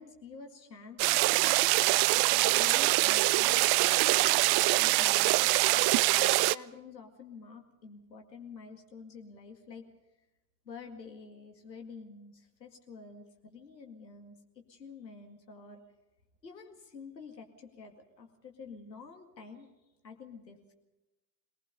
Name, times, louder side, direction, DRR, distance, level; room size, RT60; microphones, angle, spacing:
voice 1, 0.0-1.6 2.3-4.1 4.8-9.9 10.6-15.8 16.4-19.7 20.0-20.7, left 5 dB, 90° left, 4 dB, 2.2 m, -49 dB
sound 1, 1.0-6.6, right 20 dB, 50° right, 0.6 m, -24 dB
25.0 x 19.0 x 5.4 m, 0.98 s
figure-of-eight pair, 55°, 49 cm